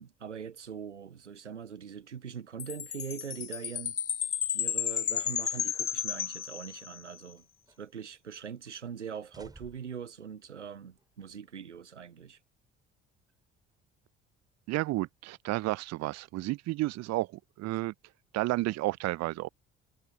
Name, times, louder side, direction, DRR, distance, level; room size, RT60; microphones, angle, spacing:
voice 1, 0.0-4.0 4.5-7.4 7.8-12.4, right 7 dB, 85° right, 0.7 m, -42 dB
Chime, 2.6-7.1, left 9 dB, 85° left, 0.5 m, -33 dB
sound 1, 5.1-5.8 6.2-6.3 7.0-8.1 8.4-8.7 9.1-10.1 11.0-11.1, right 2 dB, 10° right, 5.0 m, -58 dB
voice 2, 14.7-17.3 17.6-17.9 18.3-19.5, right 19 dB, 50° right, 0.8 m, -31 dB
figure-of-eight pair, 50°, 35 cm